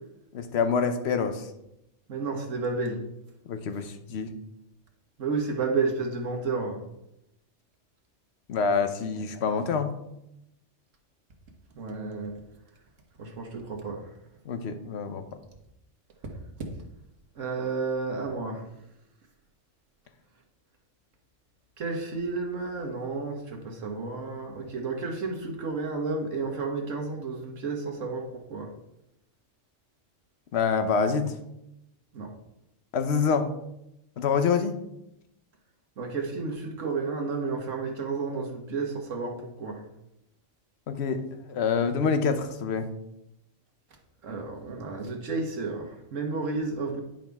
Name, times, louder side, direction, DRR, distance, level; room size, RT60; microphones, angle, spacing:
voice 1, 0.3-1.4 3.5-4.3 8.5-9.9 14.5-15.2 30.5-31.3 32.9-33.5 34.2-34.7 40.9-41.2 41.5-42.9, left 5 dB, 60° left, 9 dB, 1.0 m, -26 dB
voice 2, 2.1-3.0 5.2-6.8 11.7-12.3 13.2-14.1 17.3-18.6 21.8-28.7 32.1-32.3 36.0-39.8 44.2-47.0, right 4 dB, 75° right, 2 dB, 1.6 m, -31 dB
10.5 x 5.3 x 3.5 m, 0.83 s
omnidirectional pair, 1.3 m